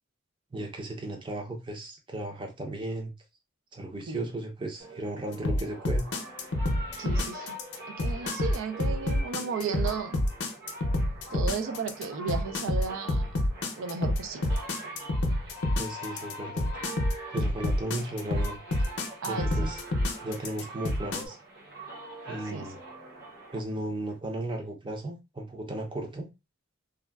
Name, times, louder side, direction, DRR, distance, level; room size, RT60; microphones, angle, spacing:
voice 1, 0.5-3.1 3.7-6.0 15.8-16.7 17.3-18.6 19.3-19.8 20.2-21.4 22.3-22.8 23.5-26.3, right 1 dB, 25° right, 0.5 m, -35 dB
sound 1, 4.8-24.2, right 1 dB, 50° right, 0.8 m, -43 dB
sound 2, 5.4-21.2, left 1 dB, 65° left, 0.5 m, -27 dB
voice 2, 7.0-7.6 7.9-10.1 11.3-13.3 13.8-14.4 19.2-19.7 22.5-22.7, right 5 dB, 90° right, 0.4 m, -34 dB
3.5 x 2.1 x 2.2 m
head